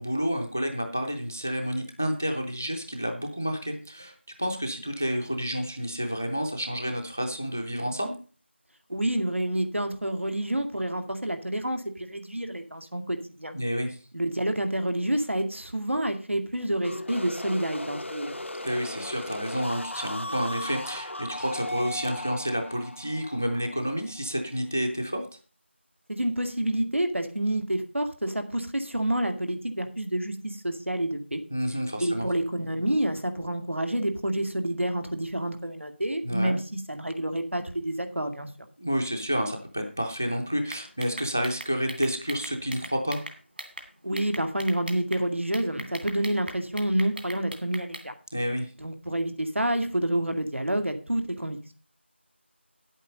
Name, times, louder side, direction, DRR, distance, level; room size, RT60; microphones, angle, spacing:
voice 1, 0.0-8.2 13.5-14.0 18.6-25.2 31.5-32.3 36.2-36.6 38.8-43.2 48.3-48.7, equal, 10° left, 4 dB, 0.5 m, -30 dB
voice 2, 8.9-13.5 14.1-18.4 26.1-31.4 32.0-38.5 44.0-48.1 48.8-51.7, right 1 dB, 75° right, 6 dB, 2.2 m, -28 dB
sound 1, 16.8-24.5, left 1 dB, 75° left, 0.6 m, -37 dB
sound 2, 40.7-43.9 44.2-45.2 45.5-48.1, right 1 dB, 55° right, 2.7 m, -40 dB
10.0 x 8.2 x 5.2 m, 0.37 s
figure-of-eight pair, 175°, 7 cm